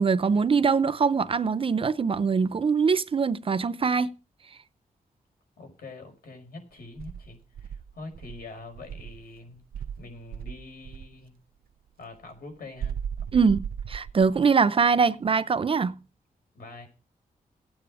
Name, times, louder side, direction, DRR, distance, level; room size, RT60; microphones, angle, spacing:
voice 1, 0.0-4.1 13.3-16.0, right 5 dB, 35° right, 0.6 m, -23 dB
voice 2, 5.6-9.6 10.0-11.4 12.0-13.0 13.3-13.5 16.5-16.9, left 3 dB, 75° left, 5.5 m, -44 dB
Insect, 7.0-9.2 9.7-11.1 12.8-14.5, right 8 dB, 75° right, 0.6 m, -36 dB
15.0 x 9.1 x 4.9 m
wide cardioid pair, 170°, 15 cm